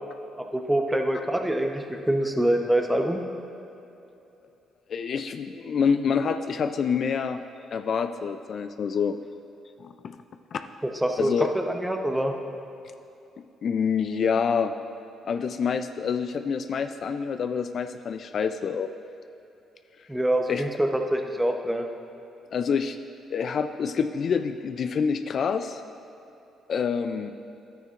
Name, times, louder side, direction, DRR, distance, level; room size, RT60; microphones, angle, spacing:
voice 1, 0.4-3.2 10.8-12.3 20.1-21.9, right 1 dB, 5° right, 4 dB, 0.8 m, -25 dB
voice 2, 4.9-7.4 7.7-9.2 9.8-9.9 10.5-10.6 11.2-11.5 13.6-14.7 15.2-18.9 20.5-20.6 22.5-23.0 23.3-25.8 26.7-27.3, left 6 dB, 55° left, 8 dB, 0.3 m, -27 dB
11.0 x 9.3 x 2.5 m, 2.9 s
cardioid pair, 75°, 0 cm